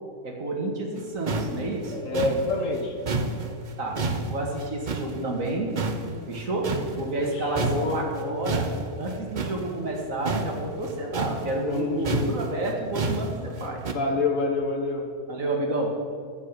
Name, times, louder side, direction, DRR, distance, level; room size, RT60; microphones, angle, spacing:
voice 1, 0.2-2.0 3.8-5.7 6.3-6.7 7.0-8.7 9.0-13.8 15.3-15.9, right 2 dB, 70° right, 1 dB, 2.2 m, -30 dB
sound 1, 1.0-1.1 1.3-5.5 5.8-7.3 7.6-13.9, right 3 dB, 40° right, 0.8 m, -30 dB
voice 2, 1.9-3.0 7.2-8.0 11.7-12.4 13.7-15.1, left 3 dB, 65° left, 2 dB, 1.9 m, -27 dB
13.5 x 5.8 x 8.3 m, 2.2 s
omnidirectional pair, 1.4 m